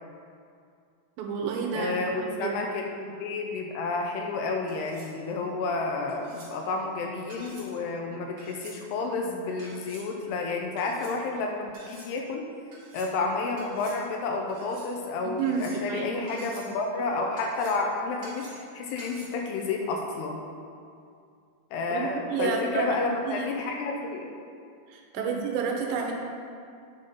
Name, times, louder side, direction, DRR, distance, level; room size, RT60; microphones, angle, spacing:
voice 1, 1.2-2.6 15.4-16.4 21.9-23.0 23.3-23.5 24.9-26.1, right 5 dB, 80° right, 1 dB, 3.0 m, -30 dB
voice 2, 1.7-2.9 3.2-12.4 12.9-20.4 21.7-24.3 25.2-25.4, left 3 dB, 85° left, 2 dB, 2.6 m, -30 dB
sound 1, 4.7-5.2 6.1-6.5 7.3-7.7 8.4-8.8 9.6-10.0 10.8-11.1 11.7-12.1 12.7-13.1 13.6-14.0 14.5-14.9 15.4-15.9 16.3-16.7 17.4-17.9 18.2-18.7 19.0-19.2, right 2 dB, 45° right, 2.5 m, -48 dB
9.0 x 5.5 x 5.4 m, 2.4 s
omnidirectional pair, 5.1 m